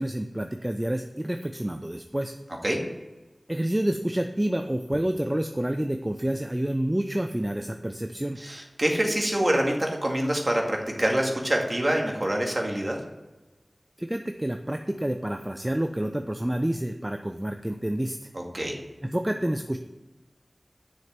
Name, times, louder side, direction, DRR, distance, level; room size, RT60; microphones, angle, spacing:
voice 1, 0.0-2.3 3.5-8.4 14.0-18.3 19.0-19.8, right 1 dB, 20° right, 6 dB, 0.6 m, -28 dB
voice 2, 8.4-13.0 18.3-18.8, right 1 dB, 40° right, 0 dB, 2.2 m, -26 dB
7.6 x 6.4 x 7.4 m, 1.1 s
wide cardioid pair, 40°, 0 cm